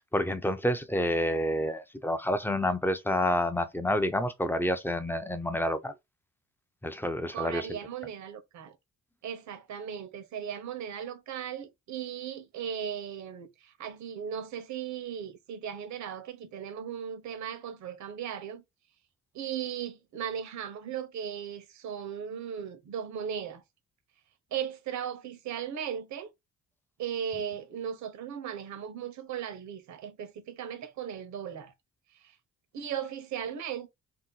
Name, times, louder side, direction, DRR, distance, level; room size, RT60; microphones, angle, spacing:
voice 1, 0.0-5.9 6.8-7.8, left 1 dB, 5° left, 0.4 m, -29 dB
voice 2, 7.3-8.8 9.2-18.6 19.3-23.6 24.5-26.3 27.0-31.7 32.2-32.3 32.7-33.9, right 8 dB, 70° right, 0.9 m, -37 dB
2.8 x 2.1 x 3.8 m
cardioid pair, 90°, 30 cm